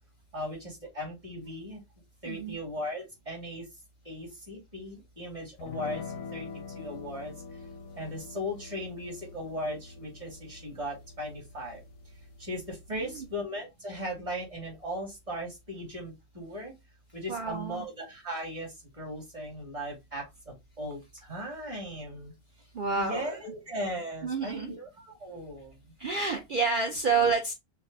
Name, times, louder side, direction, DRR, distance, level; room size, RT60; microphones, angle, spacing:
voice 1, 0.3-1.8 2.2-3.6 4.1-6.0 6.3-6.5 6.7-7.3 8.0-11.8 12.4-16.7 17.1-22.3 23.0-25.7, equal, 25° right, 1.9 m, -38 dB
voice 2, 2.2-2.6 12.9-13.3 17.3-17.8 22.7-23.4 24.2-24.7 26.0-27.5, right 4 dB, 45° right, 0.8 m, -29 dB
sound 1, 5.6-13.4, left 4 dB, 90° left, 1.0 m, -45 dB
6.5 x 2.2 x 2.6 m
omnidirectional pair, 1.3 m